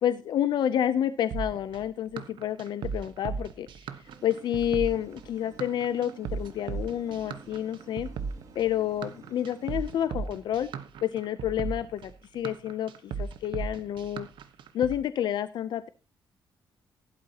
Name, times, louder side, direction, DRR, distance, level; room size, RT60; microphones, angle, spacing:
voice 1, 0.0-3.7 4.2-8.1 8.6-10.7 11.0-14.3 14.7-15.9, left 10 dB, 65° left, 13 dB, 0.6 m, -29 dB
sound 1, 1.3-15.0, right 5 dB, 80° right, 1.2 m, -36 dB
sound 2, 4.0-10.0, right 4 dB, 45° right, 3.0 m, -52 dB
16.0 x 11.5 x 2.9 m, 0.30 s
wide cardioid pair, 170°, 8 cm